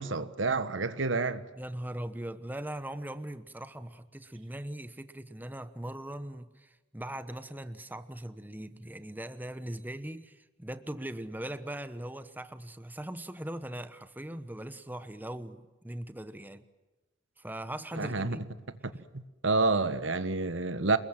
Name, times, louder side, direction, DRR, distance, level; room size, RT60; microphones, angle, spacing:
voice 1, 0.0-1.5 18.0-18.4 18.8-21.0, right 3 dB, 80° right, 1.5 m, -29 dB
voice 2, 1.6-16.6 17.4-18.5, right 1 dB, 10° right, 1.1 m, -40 dB
28.5 x 21.5 x 7.6 m
head